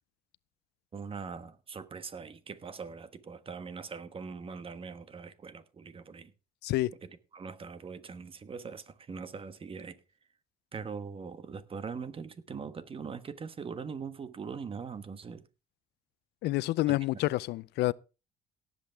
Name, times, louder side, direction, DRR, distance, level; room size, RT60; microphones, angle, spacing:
voice 1, 0.9-6.3 7.0-10.0 10.7-15.4 16.9-17.0, right 5 dB, 35° right, 1.3 m, -41 dB
voice 2, 16.4-17.9, left 18 dB, 75° left, 0.5 m, -28 dB
18.0 x 8.2 x 3.4 m
cardioid pair, 110°, 17 cm